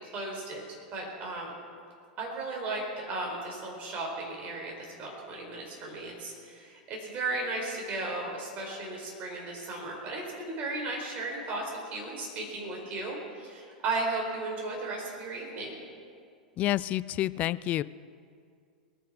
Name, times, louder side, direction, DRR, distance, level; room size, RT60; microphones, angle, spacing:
voice 1, 0.1-0.6 0.9-1.6 2.2-4.7 5.0-15.8, right 2 dB, 30° right, -1 dB, 4.4 m, -35 dB
voice 2, 16.6-17.8, left 14 dB, 30° left, 18 dB, 0.3 m, -28 dB
20.5 x 10.0 x 6.2 m, 2.3 s
figure-of-eight pair, 95°, 5 cm